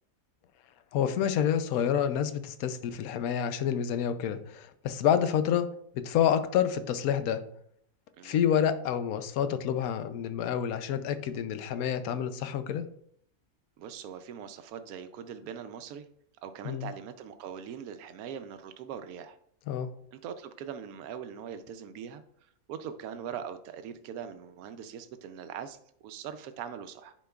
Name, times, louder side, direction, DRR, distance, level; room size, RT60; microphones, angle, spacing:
voice 1, 0.9-5.7 5.9-7.4 8.2-12.9 16.6-16.9 19.7-19.9, left 9 dB, 80° left, 10 dB, 1.1 m, -28 dB
voice 2, 13.8-16.1 16.4-19.4 20.1-22.2 22.7-27.1, right 8 dB, 85° right, 9 dB, 1.0 m, -41 dB
10.0 x 5.1 x 2.3 m, 0.67 s
omnidirectional pair, 1.5 m